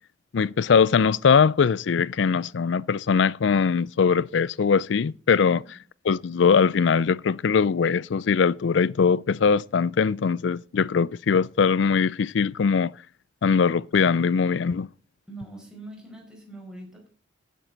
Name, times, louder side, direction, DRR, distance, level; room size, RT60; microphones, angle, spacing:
voice 1, 0.3-5.6 6.0-12.9 13.4-14.9, left 6 dB, 70° left, 0.4 m, -21 dB
voice 2, 15.3-17.1, right 2 dB, 5° right, 4.7 m, -42 dB
16.0 x 7.5 x 3.9 m
head